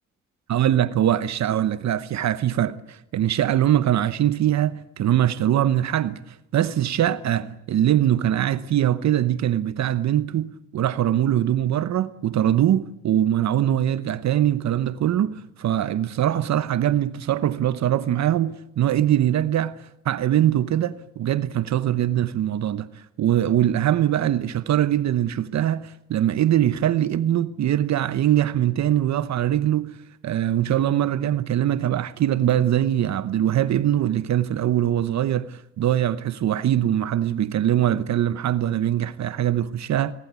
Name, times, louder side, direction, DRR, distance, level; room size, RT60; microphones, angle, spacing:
voice 1, 0.5-19.7 20.0-30.0 30.2-40.1, right 11 dB, 65° right, 1.0 m, -22 dB
28.0 x 21.0 x 8.3 m
cardioid pair, 90°, 30 cm